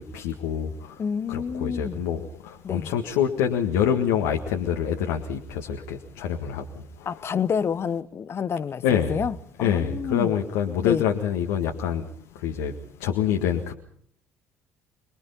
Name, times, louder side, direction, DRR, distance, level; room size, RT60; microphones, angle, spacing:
voice 1, 0.0-1.0 1.3-7.1 8.8-9.2 9.6-12.0 12.4-12.7 13.0-13.7, left 8 dB, 65° left, 1.8 m, -26 dB
voice 2, 1.0-2.0 2.6-2.9 7.1-10.3 10.8-11.0, left 7 dB, 40° left, 1.1 m, -28 dB
28.0 x 22.0 x 5.4 m
figure-of-eight pair, 50°, 7 cm